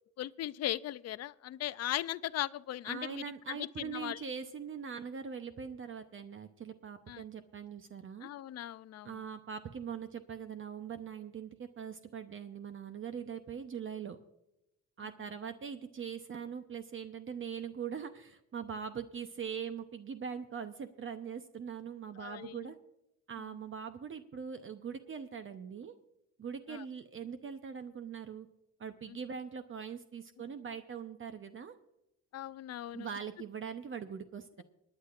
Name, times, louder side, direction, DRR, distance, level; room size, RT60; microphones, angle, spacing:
voice 1, 0.2-4.2 7.1-7.2 8.2-9.1 22.2-22.7 23.4-23.6 26.7-26.8 32.3-33.1, left 13 dB, 55° left, 18 dB, 0.4 m, -38 dB
voice 2, 2.8-8.3 9.0-14.2 15.0-22.8 23.3-25.9 26.4-28.5 28.8-31.8 32.9-34.6, right 7 dB, 45° right, 9 dB, 0.8 m, -42 dB
25.0 x 9.7 x 2.5 m, 0.87 s
cardioid pair, 90°, 30 cm